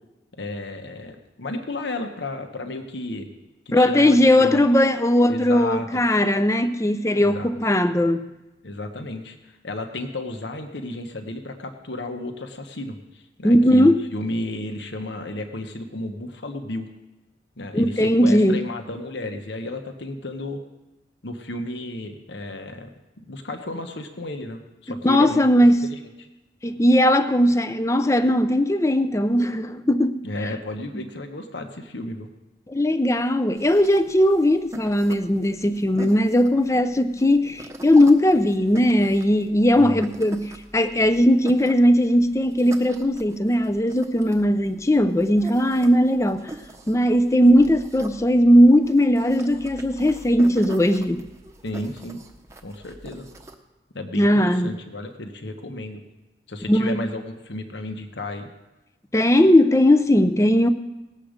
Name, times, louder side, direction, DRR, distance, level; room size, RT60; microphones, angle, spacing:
voice 1, 0.4-3.3 3.7-4.6 5.3-6.0 7.2-7.5 8.6-16.9 17.6-20.6 21.2-22.9 23.2-25.4 25.9-26.3 30.2-32.3 39.7-40.1 51.6-52.2 52.6-53.3 53.9-56.0 56.5-58.5, left 1 dB, 75° left, 1.1 m, -33 dB
voice 2, 3.7-8.3 13.4-14.0 17.7-18.6 24.9-25.8 26.6-30.2 32.7-46.5 46.9-51.2 54.1-54.7 56.7-57.0 59.1-60.7, left 1 dB, 15° left, 0.5 m, -18 dB
sound 1, 33.6-53.5, right 1 dB, 15° right, 0.8 m, -43 dB
18.5 x 7.6 x 5.1 m
head